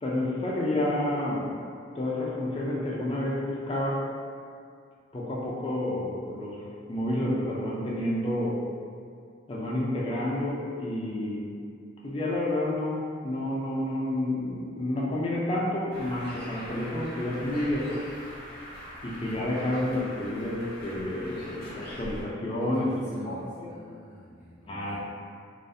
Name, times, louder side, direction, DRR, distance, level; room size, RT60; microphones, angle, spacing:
voice 1, 0.0-1.5 1.9-4.0 5.1-6.6 6.9-8.6 9.5-11.4 12.0-18.0 19.0-22.9 23.3-23.7 24.7-25.0, left 1 dB, 25° left, -5 dB, 0.3 m, -29 dB
Bird, 15.9-22.2, equal, 50° left, 0.7 m, -42 dB
voice 2, 22.6-25.0, equal, 70° right, -12 dB, 0.6 m, -44 dB
2.4 x 2.0 x 2.5 m, 2.3 s
head